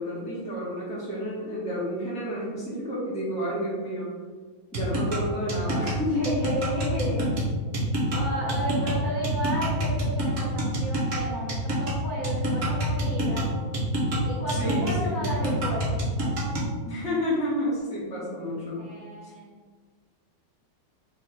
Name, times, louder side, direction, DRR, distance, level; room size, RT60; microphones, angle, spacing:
voice 1, 0.0-4.1 4.7-6.2 14.5-15.2 16.8-18.8, equal, 5° left, -8 dB, 1.0 m, -30 dB
sound 1, 4.7-16.7, right 1 dB, 50° right, 1.1 m, -27 dB
voice 2, 6.1-7.3 8.1-13.5 14.3-16.1 18.8-19.5, equal, 55° left, -7 dB, 1.3 m, -33 dB
3.5 x 3.4 x 4.3 m, 1.5 s
omnidirectional pair, 2.3 m